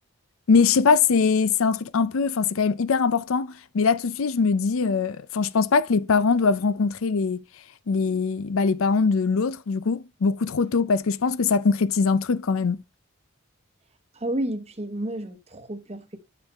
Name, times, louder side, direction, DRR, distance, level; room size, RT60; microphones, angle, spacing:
voice 1, 0.5-7.4 7.9-12.8, left 5 dB, 65° left, 0.5 m, -22 dB
voice 2, 14.1-16.2, right 1 dB, 30° right, 1.0 m, -31 dB
8.2 x 6.7 x 3.4 m
head